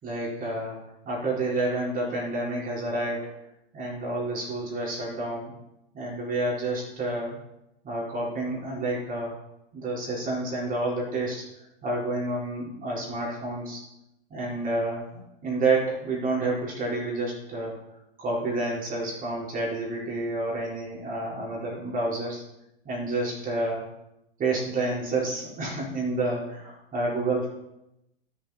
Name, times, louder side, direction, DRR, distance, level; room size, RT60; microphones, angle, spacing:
voice 1, 0.0-0.8 1.0-3.3 3.7-5.5 5.9-7.4 7.8-9.4 9.7-11.5 11.8-13.8 14.3-15.1 15.4-17.7 18.2-22.4 22.8-23.9 24.4-27.5, right 2 dB, 25° right, -5 dB, 4.3 m, -29 dB
12.5 x 7.7 x 4.3 m, 0.87 s
figure-of-eight pair, 95°, 30 cm